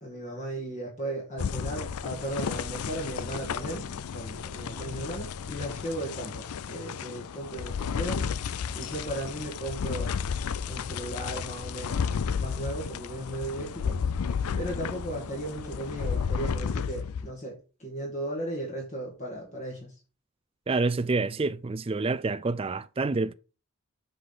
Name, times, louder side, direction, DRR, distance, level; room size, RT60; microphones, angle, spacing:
voice 1, 0.0-8.3 8.7-10.1 10.7-14.0 14.6-19.9, right 1 dB, 35° left, 1.9 m, -36 dB
sound 1, 1.4-17.3, left 6 dB, 85° left, 0.4 m, -33 dB
voice 2, 20.7-23.3, right 3 dB, 25° right, 0.4 m, -28 dB
7.6 x 4.1 x 5.7 m
head